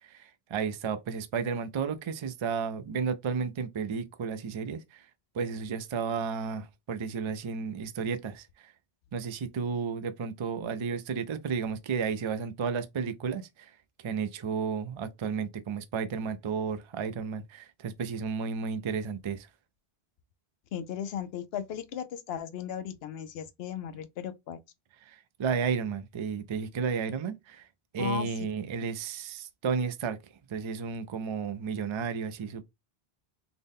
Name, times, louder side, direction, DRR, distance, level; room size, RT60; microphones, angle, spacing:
voice 1, 0.0-5.1 5.3-8.7 9.1-13.7 14.0-19.5 25.1-27.7 27.9-30.2 30.5-32.6, right 6 dB, 45° right, 0.4 m, -33 dB
voice 2, 20.7-24.6 28.0-28.5, left 8 dB, 75° left, 0.8 m, -36 dB
3.9 x 2.1 x 3.5 m
omnidirectional pair, 1.1 m